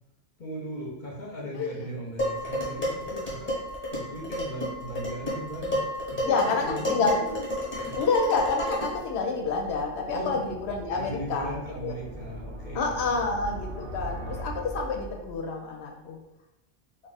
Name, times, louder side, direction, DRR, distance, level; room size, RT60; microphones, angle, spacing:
voice 1, 0.4-3.5 3.9-5.8 6.2-7.2 7.5-8.0 10.1-10.3 11.0-13.2, equal, 50° left, -3 dB, 0.9 m, -38 dB
voice 2, 1.5-1.9 6.2-7.2 7.9-12.0 12.7-16.2, left 4 dB, 80° left, 2 dB, 0.8 m, -28 dB
Dishes pots and pans, 2.2-9.1, equal, 10° left, 0.9 m, -31 dB
sound 1, 3.1-15.6, right 1 dB, 80° right, 1.0 m, -43 dB
2.4 x 2.4 x 3.9 m, 0.91 s
omnidirectional pair, 1.1 m